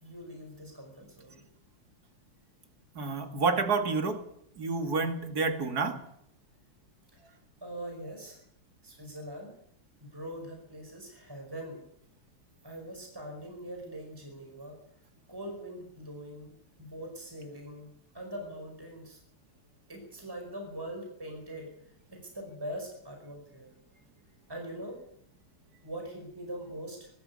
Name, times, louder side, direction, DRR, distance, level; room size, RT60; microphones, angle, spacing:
voice 1, 0.0-1.4 7.1-7.3 7.6-8.4 8.8-9.6 10.0-11.8 12.6-14.7 15.3-16.5 16.8-17.9 18.1-19.2 19.9-23.7 24.5-25.0 25.8-27.1, right 1 dB, 10° right, 2 dB, 5.1 m, -42 dB
voice 2, 2.9-4.3 4.6-6.0, right 4 dB, 50° right, 7 dB, 2.7 m, -29 dB
21.5 x 13.0 x 9.7 m, 0.71 s
omnidirectional pair, 2.3 m